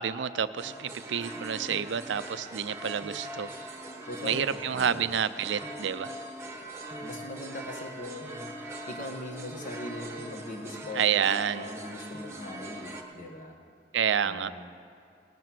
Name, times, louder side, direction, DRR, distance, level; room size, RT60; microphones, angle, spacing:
voice 1, 0.0-3.5 4.2-6.1 10.9-11.7 13.9-14.5, right 8 dB, 85° right, 13 dB, 0.5 m, -29 dB
sound 1, 0.6-13.0, right 1 dB, 15° right, 1.2 m, -41 dB
voice 2, 4.1-5.1 7.0-8.5 8.9-13.6 14.2-14.7, left 2 dB, 45° left, 2 dB, 1.6 m, -40 dB
18.5 x 9.3 x 6.0 m, 2.4 s
head